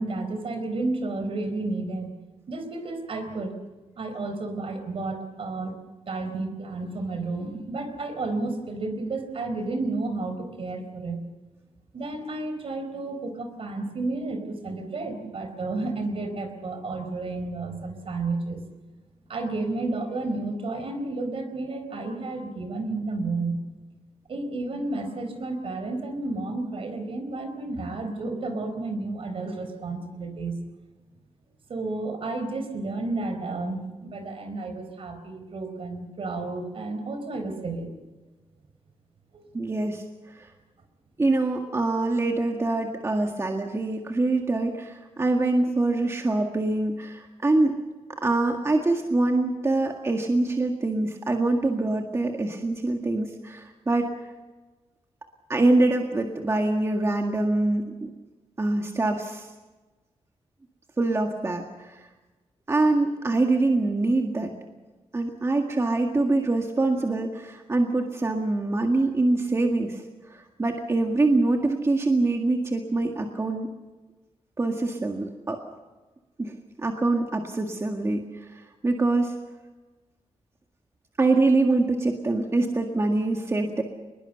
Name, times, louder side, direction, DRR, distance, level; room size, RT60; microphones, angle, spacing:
voice 1, 0.0-2.1 2.5-3.5 4.0-5.8 6.1-11.2 11.9-18.6 19.3-23.6 24.3-30.6 31.7-37.9 39.3-39.4, right 2 dB, 60° right, 7 dB, 4.1 m, -31 dB
voice 2, 39.5-40.0 40.3-40.5 41.2-47.8 48.2-54.1 55.5-57.8 58.6-59.5 61.0-62.0 62.7-64.5 65.1-73.7 74.6-75.6 76.4-79.3 81.2-83.8, right 2 dB, 25° right, 3 dB, 1.9 m, -24 dB
22.5 x 21.5 x 6.8 m, 1.2 s
wide cardioid pair, 120°, 11 cm